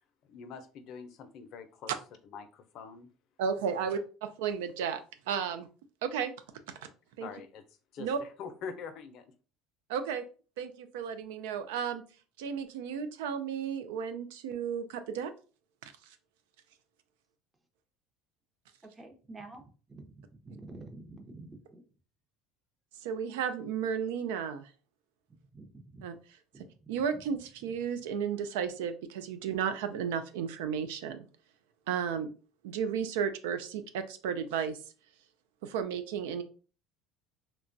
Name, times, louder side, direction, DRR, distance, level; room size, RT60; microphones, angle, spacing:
voice 1, 0.2-1.9 2.2-3.1 3.8-3.9 7.2-7.6 7.9-9.2, left 6 dB, 60° left, 9 dB, 0.5 m, -44 dB
voice 2, 3.4-4.0 4.4-5.0 5.3-5.7 6.0-6.3 7.2-7.3 8.0-8.2 9.9-10.2 10.6-12.0 12.4-15.3 23.0-24.6 26.0-26.1 26.9-31.3 31.9-32.3 32.6-34.8 35.6-36.4, right 7 dB, 85° right, 10 dB, 0.4 m, -33 dB
voice 3, 18.9-19.6 19.9-21.8 25.5-26.0 26.5-26.6 27.1-27.2, right 2 dB, 20° right, 4 dB, 0.6 m, -48 dB
2.9 x 2.1 x 2.5 m, 0.36 s
supercardioid pair, 100°, 0 cm